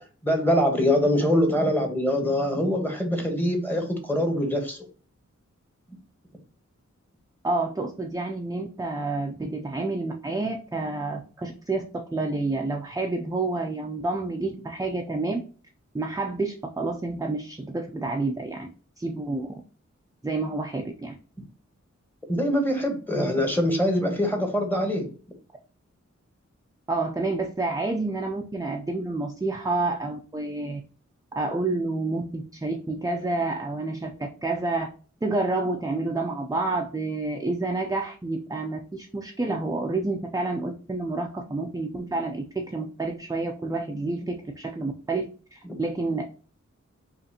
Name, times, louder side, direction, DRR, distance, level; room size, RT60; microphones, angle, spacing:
voice 1, 0.2-4.8 22.3-25.1, left 1 dB, 5° left, 3 dB, 1.1 m, -23 dB
voice 2, 7.4-15.4 15.9-18.7 19.0-19.6 20.2-21.2 26.9-30.8 31.4-34.9 35.2-46.3, right 2 dB, 10° right, 2 dB, 0.4 m, -29 dB
5.3 x 2.5 x 2.8 m, 0.40 s
wide cardioid pair, 70°, 29 cm